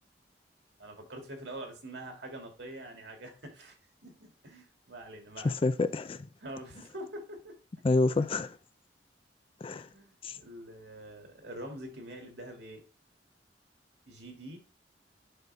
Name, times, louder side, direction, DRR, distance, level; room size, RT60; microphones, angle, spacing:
voice 1, 0.8-3.8 4.0-5.7 6.4-7.6 9.9-12.8 14.1-14.6, right 1 dB, 70° right, 2.2 m, -45 dB
voice 2, 5.4-6.2 7.8-8.6 9.6-9.9 10.2-10.4, left 3 dB, 30° left, 0.4 m, -28 dB
7.8 x 5.4 x 3.3 m
head